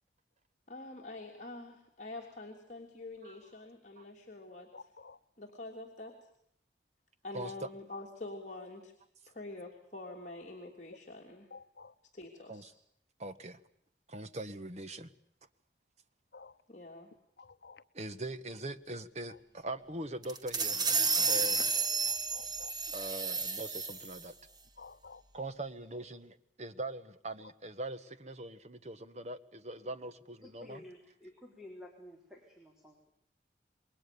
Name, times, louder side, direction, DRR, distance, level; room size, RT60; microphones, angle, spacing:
voice 1, 0.7-4.9 5.4-6.1 7.2-8.9 9.3-11.5 12.1-12.7 16.7-17.1, left 2 dB, 40° left, 3.3 m, -46 dB
voice 2, 4.7-5.2 11.5-11.9 16.3-16.5 17.4-17.8 22.1-22.7 24.8-25.2, left 4 dB, 65° left, 0.9 m, -52 dB
voice 3, 7.3-7.7 12.5-12.7 13.2-13.6 14.1-15.1 17.9-20.8 21.3-21.6 22.9-24.3 25.3-30.1 30.5-30.8, right 2 dB, 40° right, 1.4 m, -41 dB
sound 1, 20.2-24.2, right 4 dB, 25° right, 1.7 m, -31 dB
voice 4, 30.4-33.0, left 1 dB, ahead, 4.1 m, -52 dB
28.5 x 22.5 x 7.0 m
head